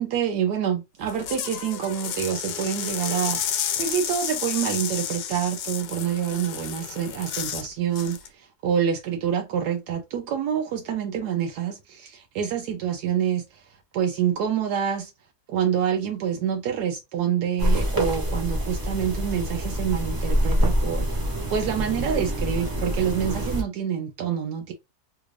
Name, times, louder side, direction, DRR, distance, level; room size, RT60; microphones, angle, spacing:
voice 1, 0.0-15.1 15.5-21.1 21.5-24.7, right 8 dB, 85° right, 1.1 m, -27 dB
sound 1, 1.0-7.7 8.0-8.3, left 9 dB, 85° left, 1.2 m, -31 dB
sound 2, 17.6-23.6, equal, 20° right, 0.7 m, -25 dB
3.3 x 2.4 x 3.1 m
omnidirectional pair, 1.7 m